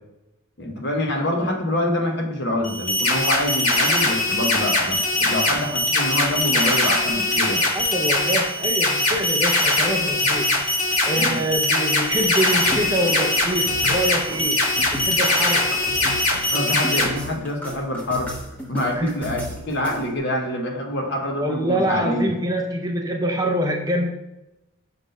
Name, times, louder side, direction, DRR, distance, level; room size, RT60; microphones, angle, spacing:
voice 1, 0.6-7.6 11.2-11.4 16.5-18.3 18.7-22.3, left 1 dB, 50° left, 1 dB, 1.2 m, -26 dB
sound 1, 2.6-17.0, left 2 dB, 75° left, 1.7 m, -21 dB
voice 2, 7.7-10.7 11.1-14.7 15.0-15.7 19.0-19.1 21.3-24.1, right 1 dB, 15° right, 3 dB, 0.5 m, -25 dB
sound 2, 12.2-20.2, equal, 5° left, 1.0 m, -35 dB
6.0 x 3.9 x 5.3 m, 0.95 s
head